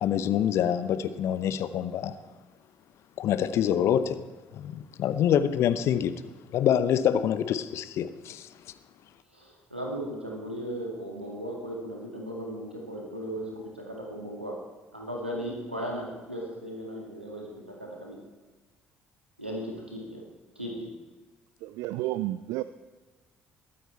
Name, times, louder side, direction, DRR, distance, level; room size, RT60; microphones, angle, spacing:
voice 1, 0.0-2.1 3.2-4.3 4.5-6.2 6.5-8.5, left 9 dB, 50° left, 13 dB, 0.7 m, -26 dB
voice 2, 9.3-14.6 14.9-18.2 19.4-20.2 20.6-20.9, equal, 90° right, -1 dB, 2.0 m, -36 dB
voice 3, 21.6-22.6, right 16 dB, 60° right, 14 dB, 0.4 m, -31 dB
21.0 x 9.3 x 4.4 m, 1.3 s
figure-of-eight pair, 50°, 6 cm